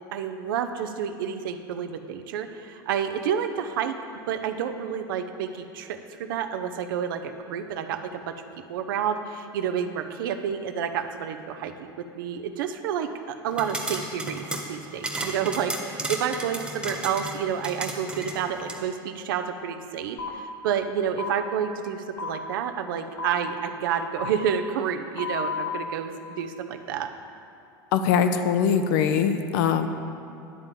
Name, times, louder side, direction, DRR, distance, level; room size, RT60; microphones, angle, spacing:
voice 1, 0.1-3.9 4.3-8.3 8.7-11.9 12.1-27.1, right 8 dB, 75° right, 8 dB, 0.6 m, -29 dB
sound 1, 13.5-18.8, right 1 dB, 10° right, 1.2 m, -34 dB
sound 2, 20.2-20.3 21.2-21.3 22.2-22.3 23.2-23.3 24.2-24.3 25.2-25.7, left 5 dB, 40° left, 1.1 m, -31 dB
voice 2, 27.9-29.9, left 7 dB, 65° left, 9 dB, 0.6 m, -22 dB
10.5 x 3.8 x 7.4 m, 2.7 s
hypercardioid pair, 85°, 11 cm